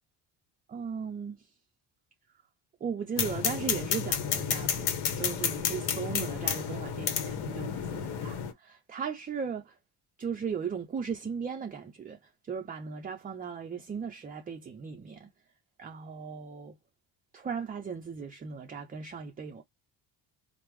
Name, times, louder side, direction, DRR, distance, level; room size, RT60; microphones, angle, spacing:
voice 1, 0.7-1.5 2.8-9.8 10.2-15.3 15.8-16.8 17.3-19.6, right 6 dB, 20° right, 0.3 m, -37 dB
sound 1, 3.2-8.5, left 7 dB, 85° left, 0.9 m, -31 dB
3.4 x 2.0 x 3.0 m
cardioid pair, 100°, 47 cm